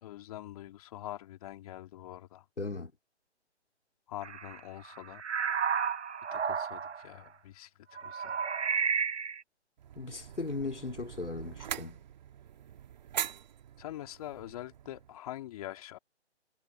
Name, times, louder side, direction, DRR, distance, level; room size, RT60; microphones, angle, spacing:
voice 1, 0.0-2.4 4.1-5.2 6.3-8.3 13.8-16.0, left 13 dB, 30° left, 2.7 m, -44 dB
voice 2, 2.6-2.9 10.0-12.0, left 3 dB, 90° left, 3.2 m, -37 dB
sound 1, 4.2-4.6 4.9-7.1 8.0-9.4, right 6 dB, 75° right, 0.9 m, -32 dB
sound 2, 9.8-15.2, right 10 dB, 40° right, 1.7 m, -42 dB
figure-of-eight pair, 145°, 35 cm